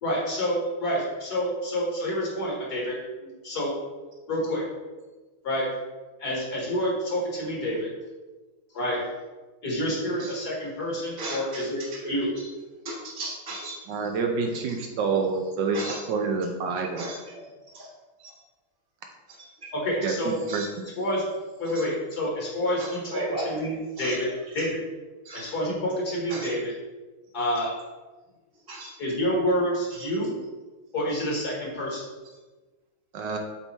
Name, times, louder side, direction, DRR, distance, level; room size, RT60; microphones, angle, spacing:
voice 1, 0.0-3.7 4.3-4.6 5.4-5.7 6.2-7.9 8.7-9.0 9.6-12.3 19.7-20.4 21.0-21.3 21.6-24.3 24.5-24.8 25.3-26.7 27.3-27.7 29.0-30.3 30.9-32.0, equal, 50° left, -4 dB, 1.9 m, -28 dB
voice 2, 11.2-12.5 12.8-13.8 15.7-16.0 16.9-17.9 18.2-18.3 19.3-19.4 20.5-20.7 21.7-21.8 22.8-23.5 24.0-24.2 25.2-25.4 26.3-26.5 28.7-28.9 29.9-30.1, right 2 dB, 15° right, -6 dB, 1.0 m, -36 dB
voice 3, 13.9-17.1 20.0-20.9 33.1-33.4, right 4 dB, 70° right, 3 dB, 1.2 m, -28 dB
7.3 x 3.5 x 4.1 m, 1.2 s
omnidirectional pair, 2.3 m